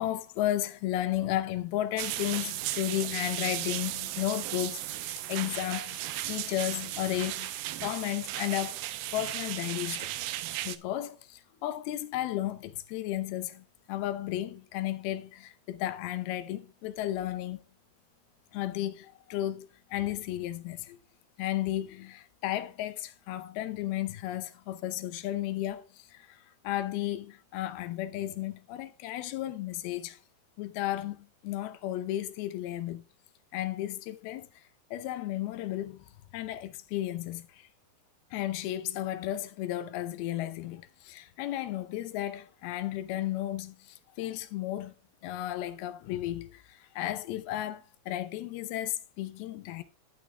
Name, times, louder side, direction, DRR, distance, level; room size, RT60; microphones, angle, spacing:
voice 1, 0.0-8.8 9.1-10.3 10.6-17.7 18.5-21.0 21.4-30.2 30.6-33.0 33.5-34.6 34.9-37.7 38.3-44.9 45.2-49.8, left 13 dB, 85° left, 2.7 m, -34 dB
sound 1, 2.0-10.8, right 15 dB, 80° right, 2.3 m, -36 dB
12.0 x 9.3 x 2.2 m
omnidirectional pair, 4.4 m